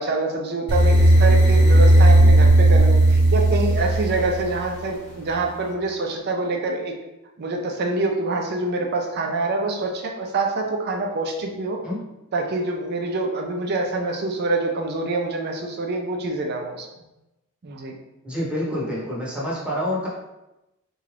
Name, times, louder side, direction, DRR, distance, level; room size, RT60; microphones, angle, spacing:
voice 1, 0.0-6.9 7.4-11.8 12.3-16.9 17.6-17.9, right 2 dB, 50° right, 2 dB, 0.5 m, -26 dB
sound 1, 0.7-4.8, right 1 dB, 25° left, 0.9 m, -15 dB
voice 2, 18.2-20.1, equal, 5° right, -6 dB, 0.9 m, -27 dB
3.7 x 2.3 x 3.2 m, 0.96 s
head